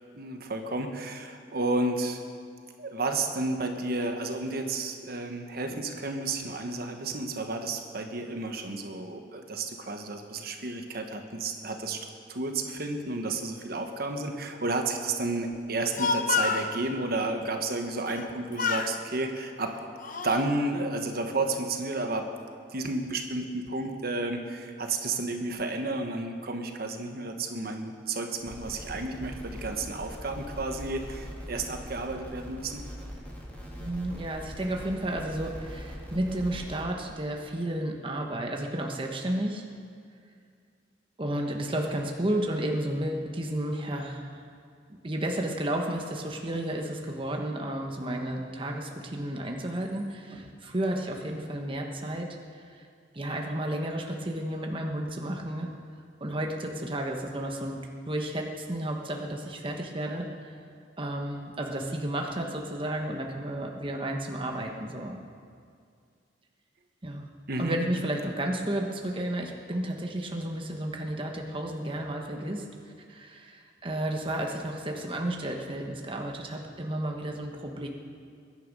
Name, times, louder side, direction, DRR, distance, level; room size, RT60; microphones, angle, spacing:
voice 1, 0.1-2.2 2.8-12.0 12.3-19.7 20.2-22.3 22.7-32.8 67.5-67.7, right 2 dB, 55° right, 4 dB, 1.3 m, -32 dB
Speech, 15.7-16.7 18.1-18.3 18.6-19.0 19.7-20.5, left 5 dB, 45° left, 0.8 m, -29 dB
sound 1, 28.4-36.8, equal, 10° left, 3.0 m, -41 dB
voice 2, 33.8-39.6 41.2-44.4 45.0-52.3 52.5-52.9 53.1-55.7 56.2-60.6 61.0-65.2 67.0-67.3 67.6-72.6 73.1-77.9, right 1 dB, 30° right, 1 dB, 1.1 m, -32 dB
22.5 x 10.5 x 5.4 m, 2.3 s
head